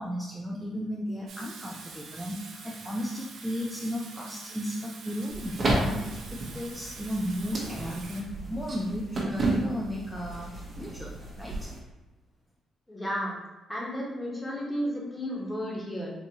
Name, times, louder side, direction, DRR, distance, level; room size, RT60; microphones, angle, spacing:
voice 1, 0.0-11.7, equal, ahead, -2 dB, 0.4 m, -34 dB
Water tap faucet / Sink (filling or washing), 1.3-8.2, right 4 dB, 75° right, 0.6 m, -46 dB
sound 1, 5.3-11.8, right 2 dB, 45° right, 0.9 m, -33 dB
voice 2, 12.9-13.4 13.7-16.1, equal, 15° left, -4 dB, 1.1 m, -33 dB
3.7 x 2.6 x 2.9 m, 1.1 s
cardioid pair, 90°, 0 cm